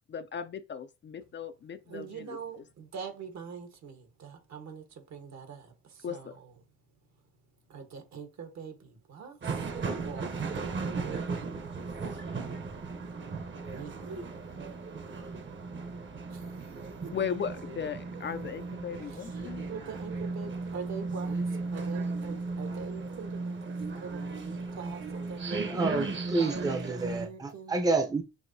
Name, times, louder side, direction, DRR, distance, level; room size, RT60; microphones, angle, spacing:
voice 1, 0.1-2.4 6.0-6.3 17.1-19.7, left 7 dB, 40° left, 0.4 m, -37 dB
voice 2, 1.9-6.5 7.7-9.7 10.0-11.8 13.7-14.4 16.3-16.7 17.0-17.1 18.1-18.7 19.1-19.4 19.7-25.8 26.5-27.9, right 6 dB, 65° right, 1.3 m, -44 dB
sound 1, 9.4-27.3, right 3 dB, 40° right, 0.9 m, -36 dB
voice 3, 25.7-28.2, right 3 dB, 10° right, 0.6 m, -29 dB
6.2 x 2.7 x 2.7 m
cardioid pair, 90°, 30 cm